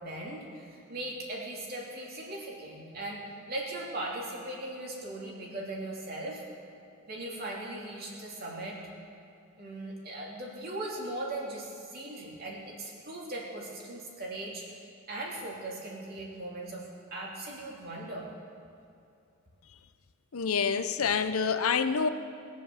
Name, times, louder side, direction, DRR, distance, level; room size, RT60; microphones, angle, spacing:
voice 1, 0.0-3.2 3.5-6.4 7.1-8.8 9.6-14.7 15.1-18.3, right 1 dB, 45° right, -3 dB, 2.9 m, -39 dB
voice 2, 20.3-22.1, left 6 dB, 80° left, 10 dB, 0.7 m, -27 dB
20.5 x 7.1 x 7.1 m, 2.6 s
head